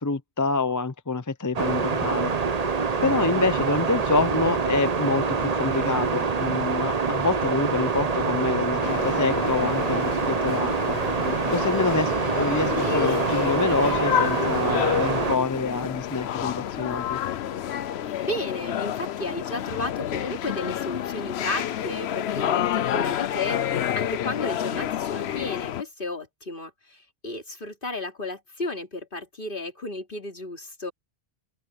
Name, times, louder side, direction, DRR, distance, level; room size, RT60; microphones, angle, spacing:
voice 1, 0.0-2.3 3.0-11.0 11.5-17.2, left 3 dB, 20° left, 0.6 m, -27 dB
sound 1, 1.5-15.4, right 5 dB, 40° right, 1.0 m, -25 dB
sound 2, 8.8-25.8, left 10 dB, 85° left, 0.9 m, -29 dB
voice 2, 18.0-30.9, left 2 dB, 55° left, 3.0 m, -33 dB
open air
omnidirectional pair, 1.1 m